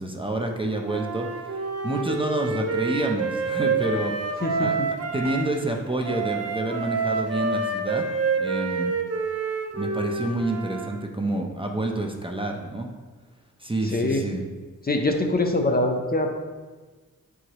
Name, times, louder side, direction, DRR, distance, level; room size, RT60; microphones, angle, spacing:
voice 1, 0.0-8.0 8.4-8.9 9.7-12.9 13.6-14.4, right 1 dB, 15° right, 2 dB, 0.7 m, -28 dB
Wind instrument woodwind instrument, 0.8-5.5 6.0-10.9, right 4 dB, 50° right, 0.8 m, -28 dB
voice 2, 4.4-4.9 13.8-14.2 14.8-16.3, left 2 dB, 30° left, 3 dB, 0.7 m, -24 dB
9.1 x 4.8 x 3.0 m, 1.3 s
wide cardioid pair, 90°, 33 cm